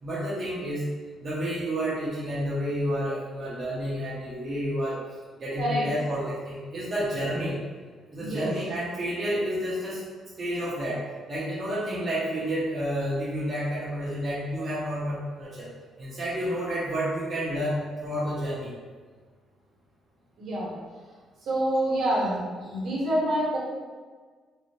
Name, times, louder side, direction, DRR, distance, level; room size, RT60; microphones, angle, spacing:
voice 1, 0.0-0.8 1.2-5.0 5.3-7.6 8.1-10.0 10.4-15.7 16.0-18.7, equal, 40° right, -8 dB, 0.7 m, -30 dB
voice 2, 8.2-8.5 20.4-20.7 21.4-23.6, right 1 dB, 65° right, -5 dB, 1.0 m, -27 dB
2.5 x 2.1 x 3.3 m, 1.5 s
cardioid pair, 90°, 0 cm